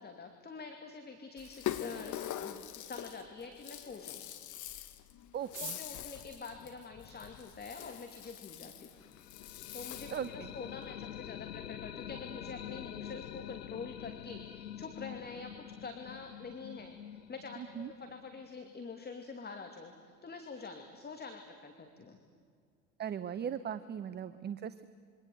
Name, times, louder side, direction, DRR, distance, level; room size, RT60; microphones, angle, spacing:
voice 1, 0.0-4.2 5.6-8.9 9.7-22.2, left 4 dB, 20° left, 5 dB, 2.5 m, -46 dB
Rattle (instrument), 1.4-10.4, left 12 dB, 40° left, 1.8 m, -44 dB
voice 2, 5.3-5.8 10.1-10.5 17.6-17.9 23.0-24.8, right 8 dB, 20° right, 14 dB, 0.8 m, -39 dB
sound 1, 5.4-7.6 8.4-8.5 8.7-8.8 9.1-9.6 9.9-10.0 10.2-10.6 10.9-11.1 11.5-11.8, right 9 dB, 75° right, 1.5 m, -50 dB
sound 2, 9.0-18.8, left 11 dB, 85° left, 0.7 m, -46 dB
27.0 x 24.5 x 8.0 m, 2.1 s
figure-of-eight pair, 80°, 48 cm